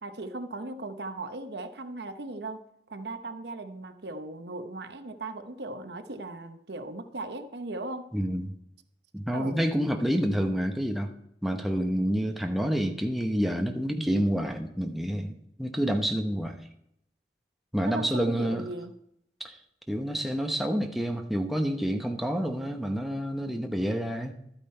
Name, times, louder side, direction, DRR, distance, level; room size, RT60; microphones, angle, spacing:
voice 1, 0.0-8.1 9.3-9.6 17.8-19.0, right 2 dB, 65° right, 9 dB, 0.8 m, -38 dB
voice 2, 8.1-8.5 9.1-11.1 11.4-16.6 17.7-18.6 19.4-19.6 19.9-24.4, equal, ahead, 3 dB, 0.8 m, -28 dB
12.5 x 8.9 x 4.4 m, 0.77 s
head